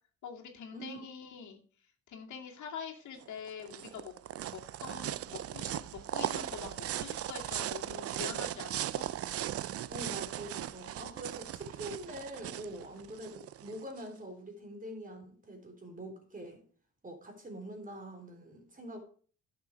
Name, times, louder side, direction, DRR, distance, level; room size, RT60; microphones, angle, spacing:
voice 1, 0.2-4.1 4.4-9.0, left 7 dB, 70° left, 1 dB, 2.3 m, -45 dB
sound 1, 3.2-14.1, right 12 dB, 50° right, 0.5 m, -38 dB
voice 2, 9.9-16.6 17.0-19.0, right 1 dB, 25° right, 4 dB, 3.6 m, -44 dB
11.0 x 6.7 x 5.1 m, 0.43 s
cardioid pair, 90°, 30 cm